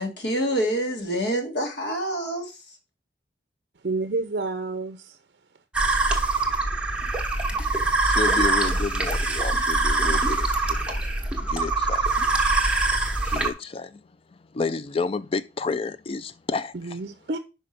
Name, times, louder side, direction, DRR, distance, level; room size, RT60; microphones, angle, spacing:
voice 1, 0.0-2.5, right 1 dB, 60° left, 1.8 m, -26 dB
voice 2, 3.8-5.2 16.7-17.4, right 3 dB, 55° right, 0.5 m, -29 dB
sound 1, 5.7-13.5, right 3 dB, 5° right, 1.0 m, -23 dB
voice 3, 8.0-11.0 11.5-12.1 13.2-14.0 14.5-17.0, left 4 dB, 30° left, 0.4 m, -30 dB
5.5 x 5.1 x 5.1 m
head